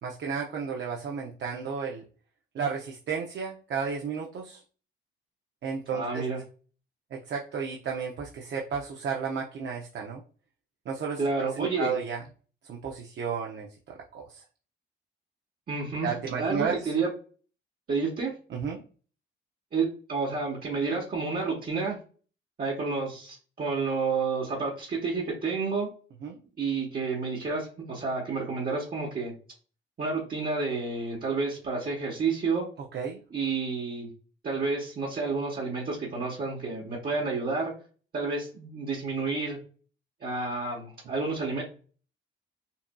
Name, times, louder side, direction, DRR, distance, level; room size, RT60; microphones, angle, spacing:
voice 1, 0.0-2.0 2.5-4.6 5.6-6.2 7.3-10.2 10.9-12.2 12.7-14.4 16.0-16.8 18.5-18.8 26.2-26.4 32.9-33.2, right 6 dB, 60° right, 0 dB, 0.7 m, -33 dB
voice 2, 5.9-6.4 11.2-11.9 15.7-16.1 16.4-17.1 17.9-18.3 19.7-22.0 22.6-25.9 26.6-29.3 30.0-32.7 33.3-34.1 34.4-37.7 38.1-39.6 40.2-41.6, right 4 dB, 45° right, -4 dB, 1.2 m, -30 dB
5.5 x 2.7 x 2.3 m, 0.39 s
cardioid pair, 110°, 20 cm